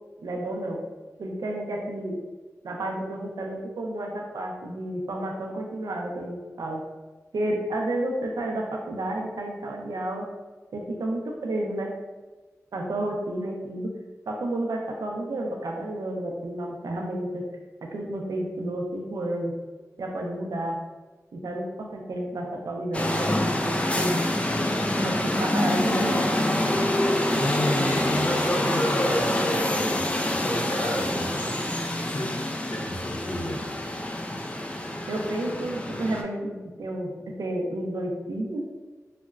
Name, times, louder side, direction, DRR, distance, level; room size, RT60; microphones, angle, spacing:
voice 1, 0.2-0.8 1.2-2.2 2.6-6.8 7.3-10.2 10.7-11.9 12.7-13.9 14.3-17.4 17.9-19.5 20.0-20.8 21.3-24.2 25.0-26.3 35.1-37.1 37.4-38.6, right 1 dB, 90° right, 0 dB, 0.5 m, -31 dB
sound 1, 22.9-36.2, left 1 dB, 20° left, 0.4 m, -26 dB
voice 2, 27.3-31.6 31.9-32.4 32.7-33.6, equal, 70° left, -2 dB, 0.7 m, -30 dB
3.9 x 2.1 x 2.3 m, 1.2 s
cardioid pair, 50°, 6 cm